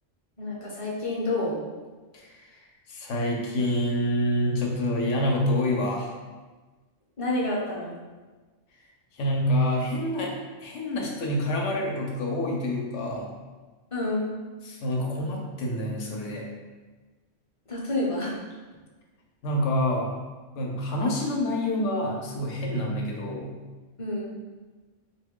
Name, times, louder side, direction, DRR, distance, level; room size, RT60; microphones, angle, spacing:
voice 1, 0.4-1.6 7.2-7.9 13.9-14.3 17.7-18.3 24.0-24.3, left 2 dB, 35° left, -5 dB, 0.6 m, -28 dB
voice 2, 2.1-2.5 2.9-6.1 9.1-10.3 10.6-13.3 14.6-16.5 19.4-20.2 20.6-23.6, left 1 dB, 75° left, -1 dB, 0.9 m, -27 dB
3.0 x 2.4 x 3.6 m, 1.3 s
omnidirectional pair, 1.2 m